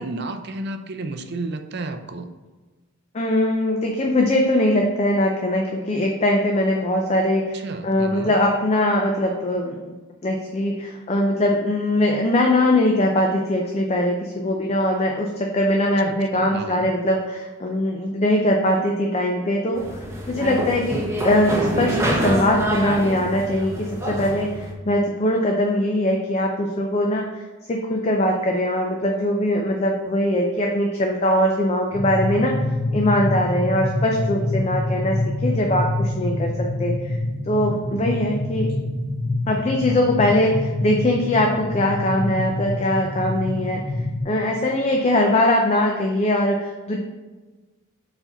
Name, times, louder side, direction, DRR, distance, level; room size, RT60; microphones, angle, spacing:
voice 1, 0.0-2.3 7.5-8.3 16.0-16.9, right 2 dB, 50° right, 7 dB, 0.5 m, -32 dB
voice 2, 3.1-9.9 10.2-32.6 32.9-37.1 37.5-38.7 39.5-43.8 44.2-47.0, left 1 dB, 30° left, 1 dB, 0.5 m, -21 dB
sound 1, 19.7-24.7, right 1 dB, 10° right, 0.8 m, -26 dB
sound 2, 31.9-44.2, left 1 dB, 70° left, 1.3 m, -26 dB
4.7 x 4.2 x 5.4 m, 1.3 s
head